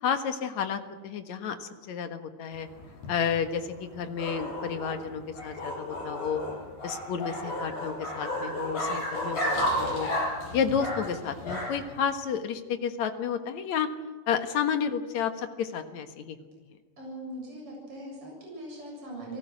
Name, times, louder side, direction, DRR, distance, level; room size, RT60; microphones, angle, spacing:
voice 1, 0.0-2.7 3.1-6.4 6.8-10.1 10.5-13.9 14.3-16.4, left 7 dB, 60° left, 8 dB, 2.4 m, -31 dB
sound 1, 2.6-12.0, left 1 dB, 75° left, 8.3 m, -33 dB
voice 2, 17.0-19.4, right 1 dB, 35° right, -2 dB, 8.5 m, -40 dB
29.5 x 19.0 x 6.4 m, 1.4 s
omnidirectional pair, 4.4 m